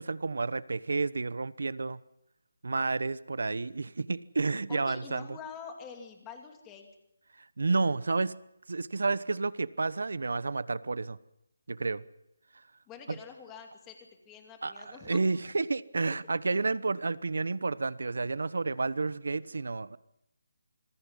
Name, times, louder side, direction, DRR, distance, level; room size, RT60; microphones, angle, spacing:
voice 1, 0.0-2.0 2.6-5.3 7.6-8.3 8.7-11.2 11.7-12.0 13.1-13.2 14.6-20.0, right 3 dB, 75° right, 18 dB, 1.0 m, -30 dB
voice 2, 4.7-6.9 12.9-15.2, left 6 dB, 10° left, 4 dB, 2.5 m, -46 dB
26.5 x 21.0 x 5.6 m, 0.82 s
hypercardioid pair, 170°, 0 cm